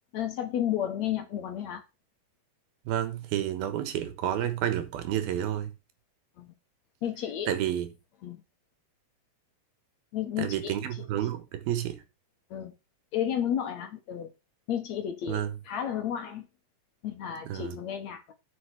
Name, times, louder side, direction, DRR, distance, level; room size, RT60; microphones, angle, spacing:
voice 1, 0.1-1.8 6.4-6.5 7.0-7.5 8.2-8.4 10.1-11.1 12.5-12.7 13.1-14.3 14.7-16.5 17.0-18.3, left 10 dB, 60° left, 2.2 m, -32 dB
voice 2, 2.9-5.7 7.5-7.9 10.4-12.0 15.3-15.5 17.5-17.8, right 11 dB, 85° right, 3.1 m, -30 dB
8.6 x 5.6 x 6.0 m
omnidirectional pair, 4.2 m